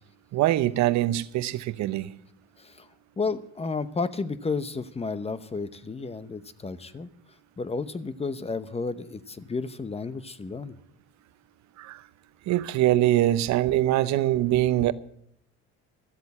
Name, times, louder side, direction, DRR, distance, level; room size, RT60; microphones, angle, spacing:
voice 1, 0.3-2.1 11.8-12.0 12.5-14.9, right 14 dB, 65° right, 0.8 m, -23 dB
voice 2, 3.2-7.1 7.6-10.8, left 4 dB, 20° left, 0.9 m, -32 dB
13.5 x 7.9 x 8.5 m
supercardioid pair, 90°, 30 cm